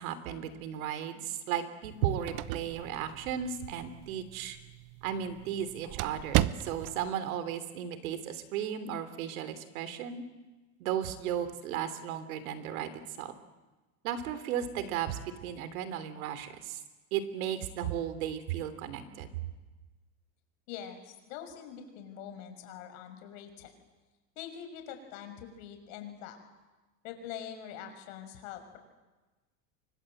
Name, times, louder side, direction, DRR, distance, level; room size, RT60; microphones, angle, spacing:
voice 1, 0.0-4.6 5.0-10.2 10.8-12.9 13.2-13.3 14.0-16.8 17.1-19.3, right 9 dB, 85° right, 11 dB, 3.2 m, -35 dB
sound 1, 1.8-7.1, right 16 dB, 45° right, 1.0 m, -35 dB
voice 2, 20.7-23.7 24.4-26.4 27.0-28.8, left 9 dB, 70° left, 6 dB, 6.0 m, -44 dB
28.5 x 24.5 x 7.9 m, 1.2 s
supercardioid pair, 140°, 41 cm